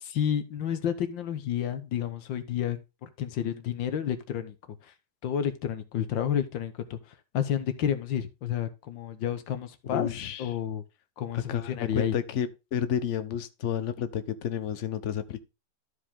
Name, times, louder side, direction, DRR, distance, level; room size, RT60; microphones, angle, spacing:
voice 1, 0.0-4.6 4.8-4.9 5.2-7.0 7.3-10.1 10.4-10.8 11.2-12.2, left 9 dB, 85° left, 1.8 m, -30 dB
voice 2, 9.9-10.5 11.3-15.4, left 9 dB, 50° left, 1.0 m, -31 dB
13.0 x 4.9 x 3.5 m
omnidirectional pair, 2.0 m